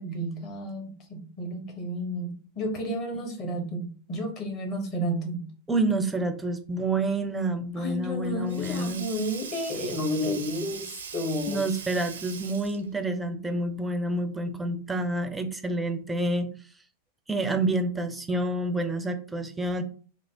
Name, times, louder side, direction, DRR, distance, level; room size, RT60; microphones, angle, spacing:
voice 1, 0.0-5.5 7.8-11.6, equal, 35° left, 2 dB, 1.2 m, -32 dB
voice 2, 5.7-9.0 11.5-16.5 17.3-19.8, right 2 dB, 10° right, 7 dB, 0.5 m, -28 dB
Sink (filling or washing), 7.8-13.0, right 6 dB, 65° right, 0.5 m, -41 dB
3.2 x 2.1 x 3.6 m, 0.40 s
figure-of-eight pair, 90°, 0 cm